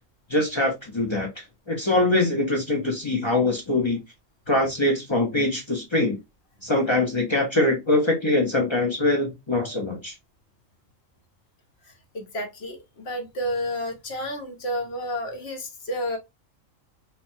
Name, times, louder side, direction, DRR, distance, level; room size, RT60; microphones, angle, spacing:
voice 1, 0.3-4.0 4.5-6.2 6.6-10.1, left 2 dB, 40° left, 0.4 m, -23 dB
voice 2, 11.9-16.2, equal, 60° left, 0.9 m, -31 dB
2.9 x 2.1 x 2.6 m
omnidirectional pair, 1.4 m